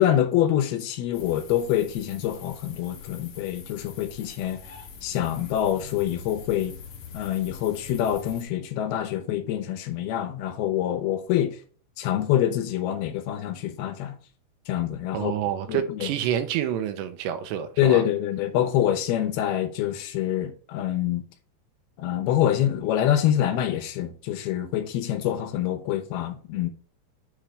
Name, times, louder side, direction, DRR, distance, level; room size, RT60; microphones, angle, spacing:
voice 1, 0.0-4.6 5.0-6.7 7.1-11.6 12.0-14.2 14.7-15.3 15.7-16.1 17.8-21.2 22.0-26.7, left 11 dB, 75° left, 2.7 m, -25 dB
sound 1, 1.1-8.4, left 6 dB, 60° left, 2.2 m, -44 dB
voice 2, 15.1-18.0, right 10 dB, 85° right, 3.2 m, -28 dB
9.0 x 3.3 x 5.0 m
omnidirectional pair, 4.9 m